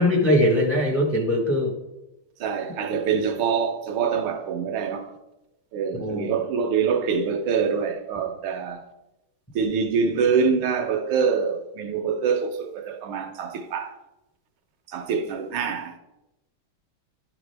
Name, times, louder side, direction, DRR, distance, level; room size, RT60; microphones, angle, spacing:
voice 1, 0.0-1.7 5.9-6.4, left 1 dB, 15° left, 0.4 m, -21 dB
voice 2, 2.4-5.1 5.7-8.8 9.5-14.0 14.9-16.0, right 6 dB, 80° right, 1.7 m, -25 dB
10.5 x 6.0 x 3.3 m
omnidirectional pair, 2.3 m